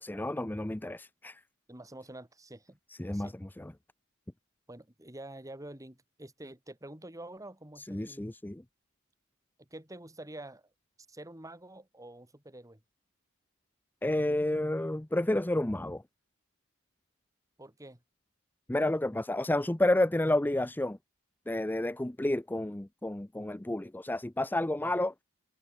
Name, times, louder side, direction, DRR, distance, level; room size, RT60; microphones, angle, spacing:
voice 1, 0.0-1.4 2.9-3.7 7.8-8.6 14.0-16.0 18.7-21.0 21.5-25.2, left 1 dB, 10° left, 0.5 m, -30 dB
voice 2, 1.7-2.8 3.1-3.3 4.7-8.2 9.6-10.7 11.1-12.8 17.6-18.0 24.8-24.9, right 1 dB, 15° right, 3.2 m, -47 dB
head